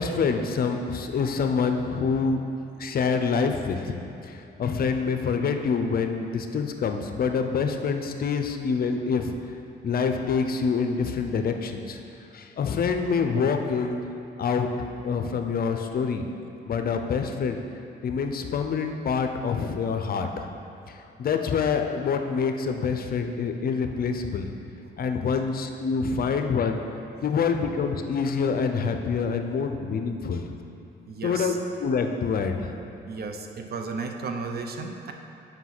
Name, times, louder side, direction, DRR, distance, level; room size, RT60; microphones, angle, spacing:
voice 1, 0.0-2.4 2.8-4.0 4.2-9.3 9.8-12.0 12.3-14.1 14.4-14.7 15.0-16.2 16.6-17.6 18.0-20.5 20.9-24.5 25.0-26.8 27.2-30.4 31.2-31.5 31.8-32.7, left 5 dB, 50° left, 5 dB, 0.6 m, -26 dB
voice 2, 31.1-31.5 33.1-35.1, right 4 dB, 50° right, 4 dB, 0.7 m, -34 dB
5.9 x 5.1 x 6.0 m, 2.7 s
cardioid pair, 90°, 20 cm